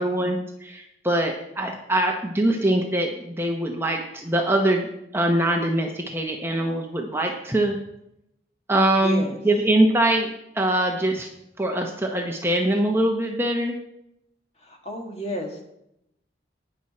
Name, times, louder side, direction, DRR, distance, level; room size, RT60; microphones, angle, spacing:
voice 1, 0.0-7.8 8.7-11.3 11.6-13.8, right 1 dB, 15° right, 2 dB, 0.9 m, -23 dB
voice 2, 9.0-9.4 14.6-15.6, equal, 35° left, 2 dB, 2.0 m, -33 dB
18.0 x 6.3 x 4.3 m, 0.81 s
head